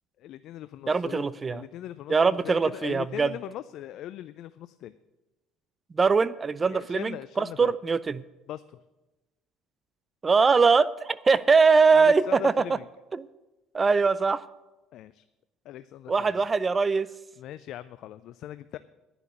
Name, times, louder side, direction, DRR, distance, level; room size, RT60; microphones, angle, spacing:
voice 1, 0.2-5.0 6.7-7.8 8.5-8.8 11.9-12.9 14.9-15.3 15.6-16.4 17.4-18.8, left 12 dB, 60° left, 14 dB, 0.4 m, -40 dB
voice 2, 0.9-1.6 2.1-3.3 5.9-8.2 10.2-12.5 13.1-13.3 13.7-14.4 16.1-17.1, right 4 dB, 30° right, 18 dB, 0.5 m, -22 dB
10.5 x 6.9 x 9.5 m, 1.1 s
hypercardioid pair, 70°, 0 cm